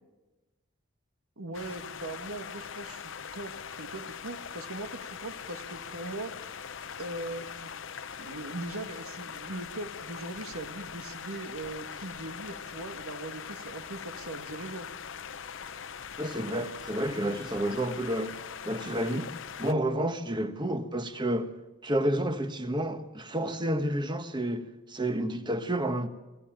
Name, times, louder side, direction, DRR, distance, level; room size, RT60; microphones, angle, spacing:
voice 1, 1.4-6.3 7.0-7.7 8.2-14.9, right 2 dB, 85° right, 1.8 m, -40 dB
sound 1, 1.5-19.7, left 7 dB, 60° left, 0.7 m, -42 dB
voice 2, 16.2-18.3 18.6-19.3 19.6-21.5 21.8-26.1, right 1 dB, 20° right, 1.1 m, -30 dB
23.5 x 16.0 x 9.0 m
head